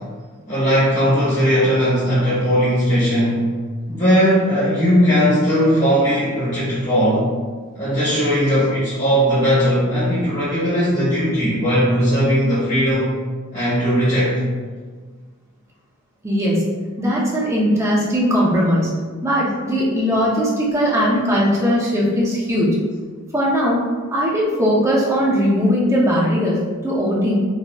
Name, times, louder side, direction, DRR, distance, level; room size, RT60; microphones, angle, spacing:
voice 1, 0.5-3.5 3.9-7.3 7.7-13.1 13.5-14.4, equal, 35° left, -13 dB, 1.3 m, -18 dB
voice 2, 16.2-16.7 17.0-18.9 19.2-22.8 23.3-23.9 24.1-27.4, equal, 15° right, -5 dB, 0.7 m, -19 dB
4.2 x 2.9 x 2.3 m, 1.5 s
head